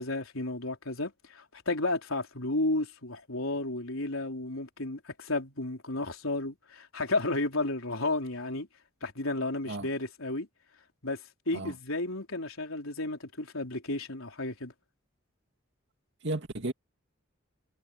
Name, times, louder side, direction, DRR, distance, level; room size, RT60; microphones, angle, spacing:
voice 1, 0.0-8.7 9.0-10.5 11.0-14.7, left 2 dB, 85° left, 3.8 m, -32 dB
voice 2, 16.2-16.7, right 2 dB, 60° right, 2.5 m, -34 dB
head